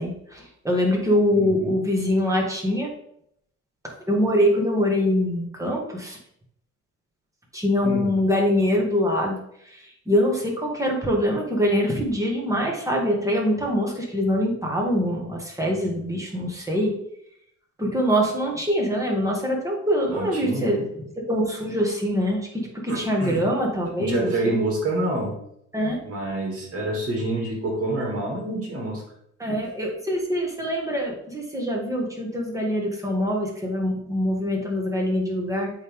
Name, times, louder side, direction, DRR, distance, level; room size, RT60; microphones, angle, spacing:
voice 1, 0.0-2.9 4.1-6.2 7.5-9.4 9.7-16.9 17.8-20.8 21.2-24.6 25.7-26.0 29.4-35.7, equal, 10° right, -2 dB, 1.9 m, -24 dB
voice 2, 1.3-1.8 7.8-8.1 20.1-20.8 22.9-23.4 23.8-25.3 26.0-29.0, right 1 dB, 50° right, -1 dB, 2.6 m, -27 dB
8.1 x 3.6 x 3.7 m, 0.73 s
cardioid pair, 90°, 30 cm